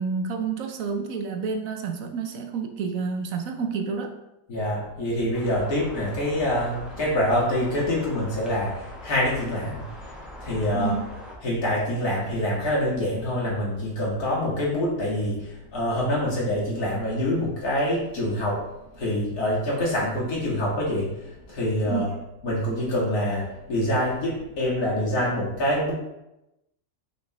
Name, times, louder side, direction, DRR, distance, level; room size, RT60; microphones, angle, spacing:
voice 1, 0.0-4.2 10.7-11.1 21.9-22.2, right 5 dB, 70° right, 4 dB, 1.1 m, -29 dB
voice 2, 4.5-9.9 10.1-10.9 11.4-18.6 18.9-22.1 22.4-25.9, left 1 dB, 90° left, -6 dB, 2.4 m, -26 dB
sound 1, 5.3-11.4, left 1 dB, ahead, 1.0 m, -42 dB
6.1 x 5.2 x 3.0 m, 0.90 s
omnidirectional pair, 1.6 m